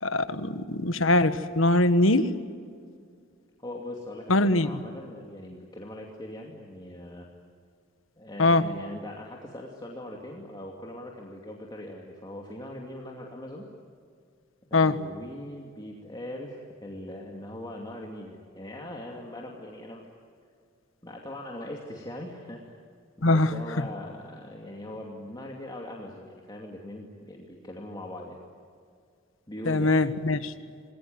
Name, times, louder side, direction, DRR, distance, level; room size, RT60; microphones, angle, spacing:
voice 1, 0.0-2.3 4.3-4.7 8.4-8.7 14.7-15.0 23.2-23.5 29.6-30.5, left 2 dB, 75° left, 11 dB, 1.5 m, -22 dB
voice 2, 3.6-7.3 8.2-13.6 14.7-20.1 21.0-22.8 23.2-28.4 29.5-30.0, left 1 dB, 20° left, -1 dB, 2.6 m, -40 dB
28.0 x 21.0 x 9.4 m, 2.2 s
head